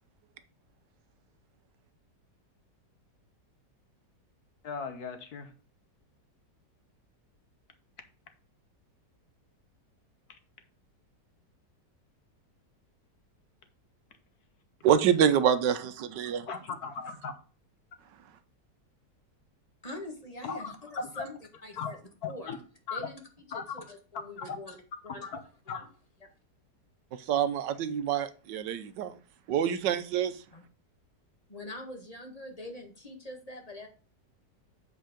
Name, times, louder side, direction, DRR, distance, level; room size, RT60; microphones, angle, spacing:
voice 1, 4.6-5.5 10.3-10.4 16.5-17.3 20.4-21.2 21.8-21.9 22.2-22.6 22.9-23.1 23.5-23.6 24.4-24.6 25.2-25.4 25.7-25.8, left 5 dB, 65° left, 1.4 m, -37 dB
voice 2, 14.8-16.5 27.3-29.1 29.5-30.3, right 9 dB, 80° right, 1.4 m, -26 dB
voice 3, 19.8-21.4 21.6-22.0 22.3-22.5 22.9-23.2 23.5-25.3 25.7-25.8 26.2-26.3 30.5-30.6 31.5-33.9, left 1 dB, 20° left, 1.6 m, -43 dB
7.9 x 4.6 x 5.0 m
omnidirectional pair, 1.9 m